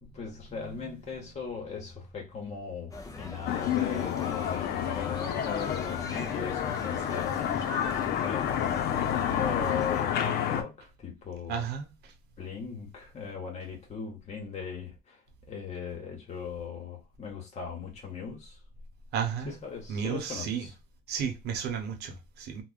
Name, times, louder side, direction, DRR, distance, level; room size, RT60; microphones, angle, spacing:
voice 1, 0.0-7.9 8.2-11.6 12.4-15.2 15.5-18.6 19.4-20.7, left 6 dB, 40° left, 0.9 m, -39 dB
voice 2, 0.6-1.0 11.5-11.9 19.1-19.6 19.9-20.6 21.1-22.6, right 7 dB, 75° right, 0.8 m, -33 dB
sound 1, 2.9-10.0, left 3 dB, 20° left, 0.6 m, -41 dB
sound 2, 3.5-10.6, left 9 dB, 70° left, 0.5 m, -30 dB
3.4 x 2.1 x 2.4 m
cardioid pair, 110°, 17 cm